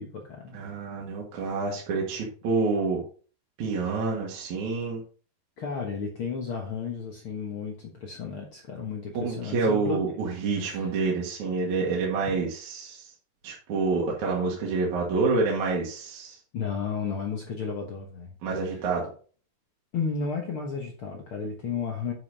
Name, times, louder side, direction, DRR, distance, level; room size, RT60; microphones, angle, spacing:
voice 1, 0.0-0.6 5.6-10.0 10.6-10.9 16.5-18.3 18.7-18.8 19.9-22.1, left 5 dB, 75° left, 1 dB, 1.2 m, -33 dB
voice 2, 0.5-3.0 3.6-5.0 9.1-13.1 13.4-16.4 18.4-19.1, right 4 dB, 55° right, -3 dB, 2.8 m, -28 dB
10.5 x 5.6 x 4.0 m, 0.41 s
omnidirectional pair, 4.6 m